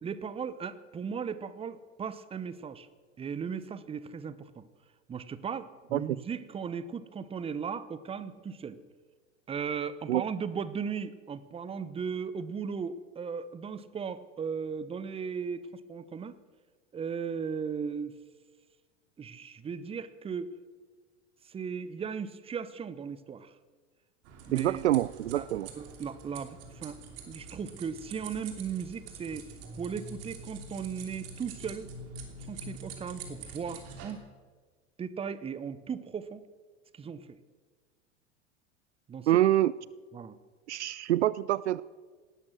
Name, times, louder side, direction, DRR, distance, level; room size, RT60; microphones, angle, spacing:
voice 1, 0.0-2.9 3.2-4.6 5.1-8.8 9.5-16.4 16.9-18.2 19.2-20.5 21.4-23.5 24.5-24.8 25.3-25.5 25.7-27.0 27.3-31.9 32.5-34.3 35.0-36.4 36.9-37.4 39.1-39.3 40.1-40.4, right 6 dB, 15° right, 15 dB, 0.9 m, -37 dB
sound 1, 24.2-34.1, right 3 dB, 40° right, 2.9 m, -45 dB
voice 2, 24.5-25.7 39.3-39.7 40.7-41.8, right 13 dB, 70° right, 20 dB, 0.5 m, -26 dB
18.0 x 12.5 x 6.3 m, 1.5 s
figure-of-eight pair, 85°, 36 cm